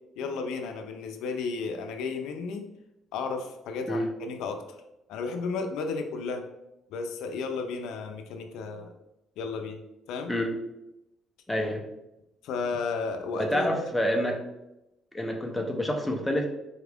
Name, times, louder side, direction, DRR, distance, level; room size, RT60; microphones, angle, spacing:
voice 1, 0.2-2.7 3.1-4.6 5.1-6.5 6.9-8.9 9.4-9.8 10.1-10.3 12.4-13.9, left 4 dB, 90° left, 5 dB, 0.4 m, -33 dB
voice 2, 11.5-11.9 13.3-14.4 15.1-16.5, equal, 5° left, 1 dB, 0.6 m, -28 dB
4.2 x 2.4 x 3.4 m, 0.89 s
cardioid pair, 115°, 0 cm